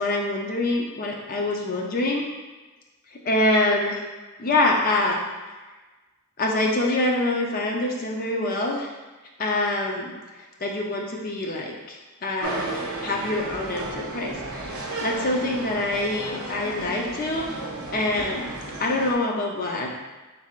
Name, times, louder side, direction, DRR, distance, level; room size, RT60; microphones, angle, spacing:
voice 1, 0.0-2.3 3.2-4.0 4.4-5.2 6.4-8.9 9.4-10.1 10.6-17.6 17.9-18.5 18.8-19.9, left 2 dB, 40° left, -1 dB, 0.6 m, -25 dB
sound 1, 12.4-19.1, right 2 dB, 75° right, 0.6 m, -34 dB
4.5 x 3.3 x 2.4 m, 1.2 s
head